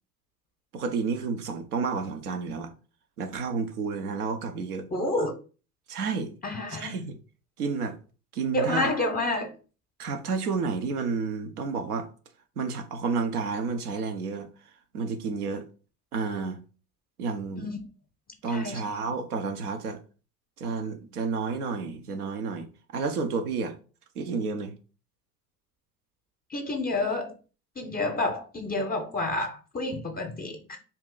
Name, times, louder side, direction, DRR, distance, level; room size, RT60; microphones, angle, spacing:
voice 1, 0.7-2.7 3.2-4.8 5.9-6.3 6.7-7.1 7.6-8.0 8.3-8.9 10.0-12.1 12.6-14.5 14.9-15.6 16.1-16.6 17.2-17.7 18.4-20.0 20.6-23.8 24.2-24.8, right 4 dB, 90° right, 0.7 m, -30 dB
voice 2, 4.9-5.3 6.4-7.0 8.5-9.5 17.6-17.8 18.5-18.8 26.5-27.3 27.8-30.8, left 2 dB, 20° left, 0.6 m, -29 dB
2.8 x 2.4 x 3.7 m
hypercardioid pair, 75°, 44 cm